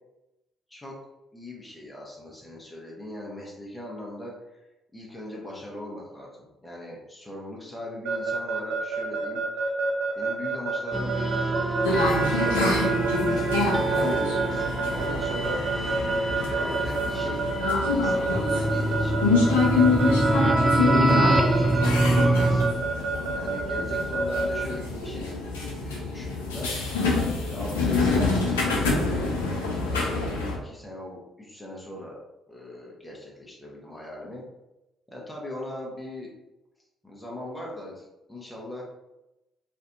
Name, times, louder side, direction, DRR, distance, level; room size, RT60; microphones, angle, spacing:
voice 1, 1.3-4.6 4.9-9.4 10.2-12.6 13.2-15.9 16.5-17.5 17.9-22.9 23.3-25.4 25.8-26.7 27.4-29.2 29.9-32.2 32.5-34.4 35.1-36.3 37.0-38.8, left 1 dB, 10° left, -4 dB, 1.0 m, -39 dB
Keyboard (musical) / Alarm, 8.0-24.7, right 4 dB, 75° right, 0.4 m, -28 dB
sound 1, 10.9-22.7, right 2 dB, 5° right, 0.4 m, -25 dB
sound 2, 11.8-30.6, left 3 dB, 85° left, 0.5 m, -27 dB
3.4 x 2.5 x 2.6 m, 0.95 s
hypercardioid pair, 45°, 0 cm